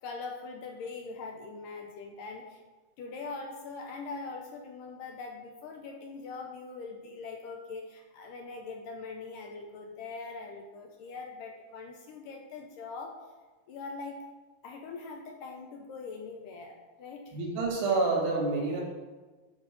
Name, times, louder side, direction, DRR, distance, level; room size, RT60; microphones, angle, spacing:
voice 1, 0.0-2.6 3.0-13.2 13.7-14.2 14.6-17.4, left 4 dB, 70° left, 2 dB, 2.2 m, -42 dB
voice 2, 17.3-18.8, right 3 dB, 90° right, -2 dB, 4.7 m, -28 dB
12.0 x 5.4 x 5.4 m, 1.3 s
omnidirectional pair, 4.6 m